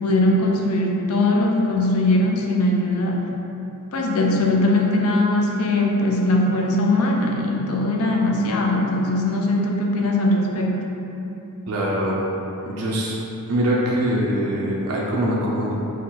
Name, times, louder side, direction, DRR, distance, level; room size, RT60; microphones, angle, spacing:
voice 1, 0.0-3.3 3.9-10.8, left 1 dB, 70° left, 0 dB, 0.5 m, -20 dB
voice 2, 11.7-12.3 12.6-13.1 13.5-15.7, equal, 85° right, -5 dB, 0.6 m, -23 dB
4.0 x 2.4 x 4.2 m, 3.0 s
head